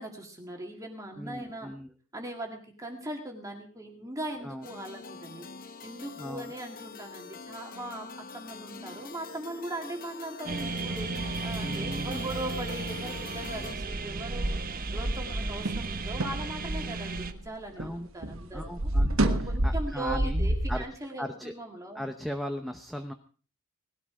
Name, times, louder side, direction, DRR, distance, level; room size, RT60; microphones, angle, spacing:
voice 1, 0.0-1.7 2.1-8.1 8.3-14.6 14.9-18.9 19.3-22.1, right 1 dB, 15° right, 1 dB, 2.0 m, -39 dB
voice 2, 1.2-1.9 4.4-4.7 6.2-6.5 11.6-12.3 17.8-18.1 18.5-20.8 21.2-21.5 21.9-23.1, equal, ahead, 6 dB, 0.9 m, -37 dB
sound 1, 4.6-13.8, left 4 dB, 40° left, 1.0 m, -44 dB
sound 2, 10.5-17.3, right 3 dB, 40° right, 1.0 m, -35 dB
sound 3, 13.6-18.0 18.2-20.8, right 1 dB, 65° right, 1.6 m, -29 dB
19.0 x 12.5 x 4.8 m, 0.42 s
head